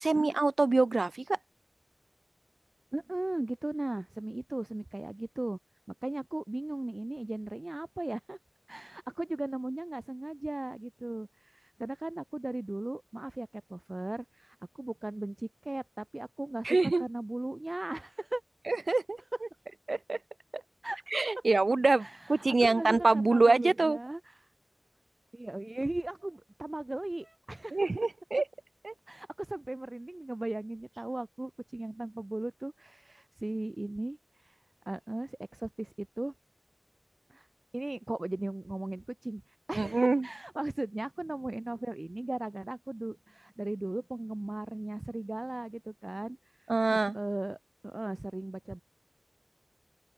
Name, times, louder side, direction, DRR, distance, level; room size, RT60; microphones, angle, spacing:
voice 1, 0.0-1.4 16.6-17.0 18.7-19.2 19.9-20.2 21.1-24.0 27.7-28.4 28.8-28.9 39.8-40.3 46.7-47.2, right 3 dB, 80° right, 3.4 m, -25 dB
voice 2, 2.9-5.6 5.9-8.4 8.7-18.4 20.8-21.0 22.0-24.5 25.3-27.9 29.1-34.6 34.9-36.3 37.3-37.5 37.7-47.6 47.8-48.8, right 2 dB, 40° right, 2.6 m, -37 dB
open air
wide cardioid pair, 60°, 0 cm